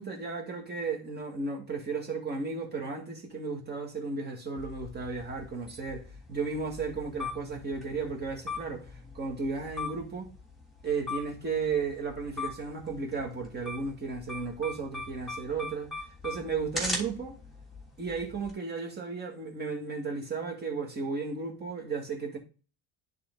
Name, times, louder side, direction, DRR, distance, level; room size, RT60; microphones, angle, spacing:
voice 1, 0.0-10.3 10.8-15.9 16.2-17.4 18.0-22.4, right 4 dB, 25° right, 2.3 m, -34 dB
sound 1, 4.6-18.5, left 2 dB, ahead, 3.1 m, -41 dB
10.0 x 4.0 x 4.0 m
cardioid pair, 130°, 38 cm